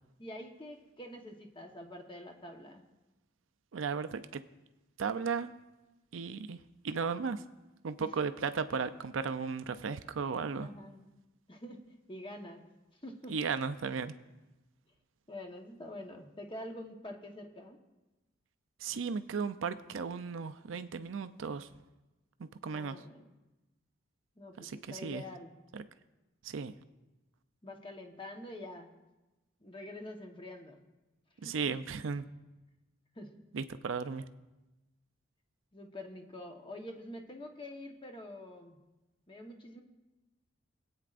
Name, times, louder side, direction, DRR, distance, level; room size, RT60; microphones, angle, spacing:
voice 1, 0.2-2.8 8.0-8.1 10.6-11.1 11.5-11.8 12.1-12.7 13.0-13.3 15.3-17.8 22.7-23.3 24.4-25.5 27.6-28.9 29.6-30.8 31.4-31.5 33.1-33.3 35.7-38.8 39.3-39.8, left 1 dB, 25° left, 3 dB, 1.1 m, -46 dB
voice 2, 3.7-4.4 5.0-5.5 6.1-6.6 6.8-7.4 7.8-10.7 13.3-14.1 18.8-21.7 22.4-23.0 24.6-25.2 25.7-25.8 26.4-26.7 31.4-32.3 33.5-34.3, right 5 dB, 85° right, 11 dB, 0.5 m, -35 dB
24.5 x 8.9 x 2.5 m, 1.1 s
head